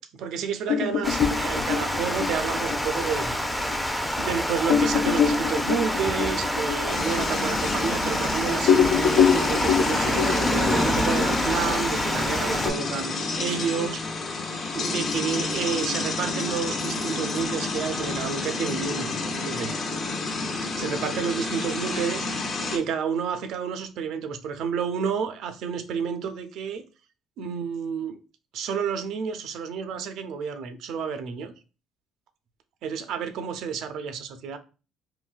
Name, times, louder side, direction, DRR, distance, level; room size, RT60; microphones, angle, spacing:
voice 1, 0.2-3.3 4.2-14.4 14.7-19.7 20.8-26.8 27.4-28.2 28.5-31.5 32.8-34.6, right 6 dB, 70° right, 0.4 m, -30 dB
sound 1, 0.7-3.8 4.2-4.3 4.7-8.3 8.6-12.7, left 7 dB, 80° left, 0.3 m, -25 dB
Water, 1.0-12.7, equal, 5° left, 0.4 m, -27 dB
sound 2, 6.9-22.8, left 3 dB, 50° left, 0.7 m, -30 dB
3.8 x 2.1 x 2.4 m
cardioid pair, 100°, 0 cm